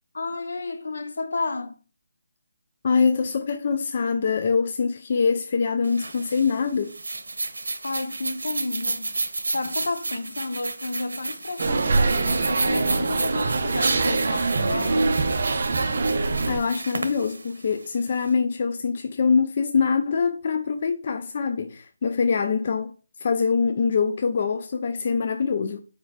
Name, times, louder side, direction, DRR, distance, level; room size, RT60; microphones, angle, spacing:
voice 1, 0.1-1.8 7.8-9.1 9.5-15.1, left 3 dB, 65° left, 0.8 m, -31 dB
voice 2, 2.8-6.9 16.5-22.9 23.2-25.8, left 5 dB, 35° left, 0.4 m, -24 dB
sound 1, 5.8-18.3, right 3 dB, 85° right, 0.8 m, -32 dB
sound 2, 11.6-16.6, right 3 dB, 50° right, 0.6 m, -23 dB
4.6 x 4.5 x 2.3 m
hypercardioid pair, 170°, 0 cm